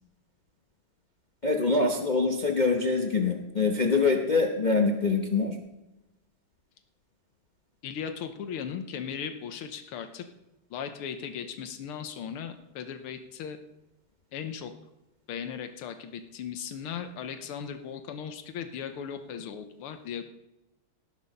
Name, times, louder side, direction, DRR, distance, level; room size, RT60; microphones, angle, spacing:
voice 1, 1.4-5.6, left 4 dB, 50° left, 2 dB, 0.5 m, -24 dB
voice 2, 7.8-10.3 10.7-13.6 14.3-14.7 15.3-20.2, left 7 dB, 80° left, 8 dB, 1.8 m, -37 dB
18.0 x 6.4 x 5.3 m, 0.96 s
omnidirectional pair, 2.4 m